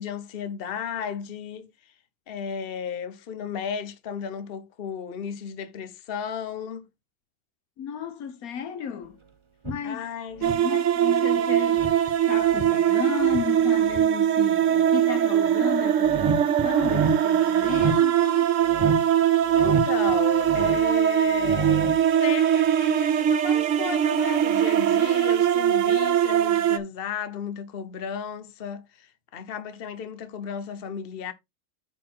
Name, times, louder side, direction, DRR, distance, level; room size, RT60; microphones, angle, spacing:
voice 1, 0.0-1.9 2.3-6.9 9.8-10.5 11.4-11.5 19.5-31.3, left 7 dB, 45° left, 1.1 m, -34 dB
voice 2, 7.8-9.2 9.6-10.0 10.4-11.9 12.3-18.5, left 7 dB, 75° left, 1.4 m, -34 dB
sound 1, 9.6-9.8 10.3-10.6 11.8-12.7 13.2-14.0 16.0-17.2 17.6-18.0 18.6-19.1 19.4-21.0 21.3-22.1, right 3 dB, 30° right, 0.6 m, -30 dB
sound 2, 10.4-26.8, right 10 dB, 60° right, 1.1 m, -21 dB
9.4 x 4.2 x 4.6 m
omnidirectional pair, 1.6 m